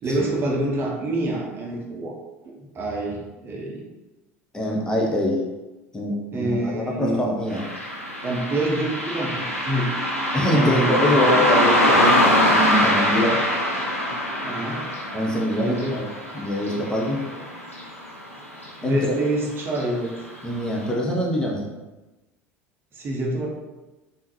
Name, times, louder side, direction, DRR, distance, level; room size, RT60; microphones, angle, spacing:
voice 1, 0.0-2.2 2.7-3.8 6.3-7.2 8.2-10.0 10.5-11.3 14.4-14.9 15.6-16.0 18.3-18.4 18.8-20.1 22.9-23.5, right 1 dB, 30° right, -1 dB, 0.7 m, -26 dB
voice 2, 4.5-5.4 5.9-7.6 10.3-13.4 14.1-14.2 15.1-16.1 16.3-17.2 18.8-19.1 20.4-21.7, left 1 dB, 10° left, -2 dB, 0.6 m, -24 dB
Car passing by, 7.5-18.3 18.6-18.7 19.7-19.8 20.3-20.4 20.9-21.0, left 1 dB, 90° left, 0.6 m, -23 dB
3.6 x 2.6 x 3.0 m, 1.1 s
figure-of-eight pair, 70°, 7 cm